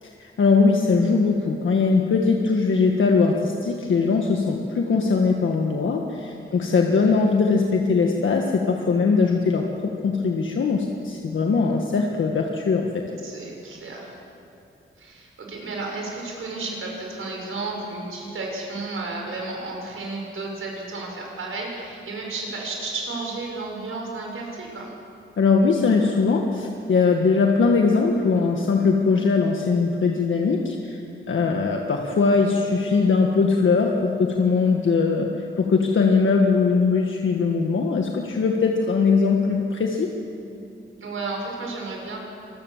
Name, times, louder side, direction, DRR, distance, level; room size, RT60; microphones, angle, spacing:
voice 1, 0.0-12.9 25.4-31.0 31.3-35.3 35.6-40.1, left 4 dB, 70° left, 1 dB, 1.7 m, -21 dB
voice 2, 6.5-6.8 13.2-14.2 15.0-24.9 41.0-42.2, right 3 dB, 80° right, 0 dB, 5.9 m, -33 dB
25.5 x 20.5 x 7.4 m, 2.8 s
wide cardioid pair, 145°, 21 cm